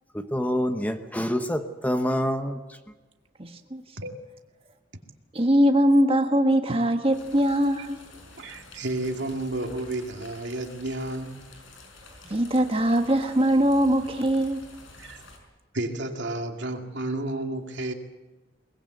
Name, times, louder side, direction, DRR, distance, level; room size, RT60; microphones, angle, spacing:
voice 1, 0.1-2.8, equal, 10° left, 1.0 m, -27 dB
voice 2, 3.4-3.8 5.3-8.0 12.3-14.6, equal, 30° right, 1.5 m, -22 dB
sound 1, 7.1-15.4, left 2 dB, 85° left, 5.9 m, -49 dB
voice 3, 8.3-11.4 15.0-15.2 15.7-17.9, right 2 dB, 65° right, 2.4 m, -31 dB
22.0 x 20.0 x 8.1 m
head